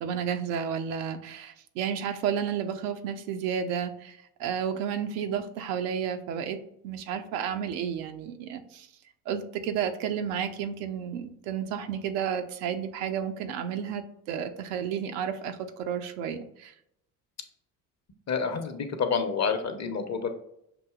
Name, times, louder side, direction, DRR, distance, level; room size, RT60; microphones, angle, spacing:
voice 1, 0.0-8.9 9.3-16.7, right 8 dB, 75° right, 7 dB, 0.6 m, -32 dB
voice 2, 18.3-20.3, left 5 dB, 35° left, 6 dB, 0.8 m, -28 dB
6.1 x 2.7 x 2.4 m, 0.76 s
hypercardioid pair, 55°, 45 cm